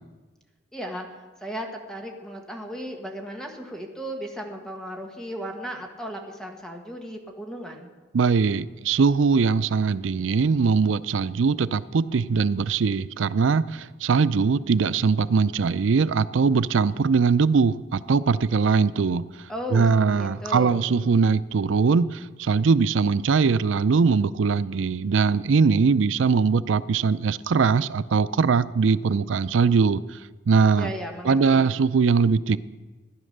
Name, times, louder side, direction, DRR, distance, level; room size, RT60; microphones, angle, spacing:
voice 1, 0.7-7.9 19.5-19.9 20.1-20.8 30.8-31.7, equal, 5° left, 2 dB, 1.5 m, -35 dB
voice 2, 8.1-19.2 19.7-30.0 30.5-30.9 31.2-32.6, right 5 dB, 85° right, 16 dB, 0.5 m, -21 dB
14.5 x 10.0 x 6.6 m, 1.2 s
head